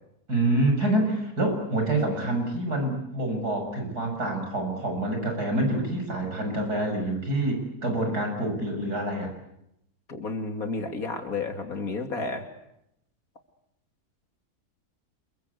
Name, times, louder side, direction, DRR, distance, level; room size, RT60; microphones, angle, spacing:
voice 1, 0.3-9.3, right 1 dB, 85° right, 4 dB, 7.3 m, -27 dB
voice 2, 10.1-12.4, left 3 dB, 65° left, 5 dB, 3.1 m, -31 dB
28.5 x 22.0 x 8.3 m, 0.82 s
omnidirectional pair, 1.6 m